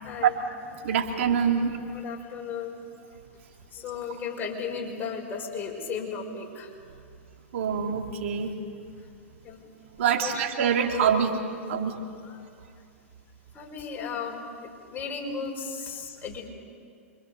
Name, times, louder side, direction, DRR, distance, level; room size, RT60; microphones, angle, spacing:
voice 1, 0.0-0.4 0.8-0.9 1.9-2.9 3.7-6.7 9.4-9.6 10.2-10.4 12.2-12.4 13.5-16.5, left 5 dB, 25° left, 0 dB, 5.6 m, -35 dB
voice 2, 0.8-1.8 7.5-8.5 10.0-11.4 11.7-11.9, right 7 dB, 65° right, 3 dB, 2.7 m, -25 dB
27.0 x 25.0 x 6.9 m, 2.3 s
hypercardioid pair, 110°, 7 cm